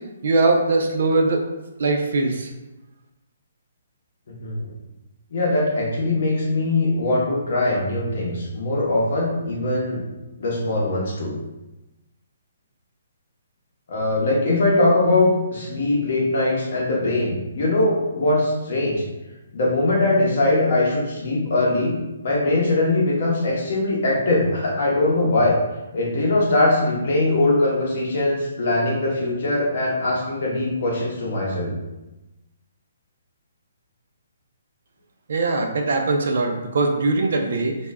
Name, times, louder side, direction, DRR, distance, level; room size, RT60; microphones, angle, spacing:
voice 1, 0.2-1.4 1.8-2.5 35.3-37.7, right 3 dB, 50° right, 3 dB, 0.3 m, -21 dB
voice 2, 5.3-10.0 10.4-11.3 13.9-19.0 19.5-21.9 22.2-25.6 25.9-31.7, left 2 dB, 45° left, -3 dB, 0.7 m, -21 dB
2.2 x 2.0 x 3.4 m, 1.0 s
hypercardioid pair, 175°, 0 cm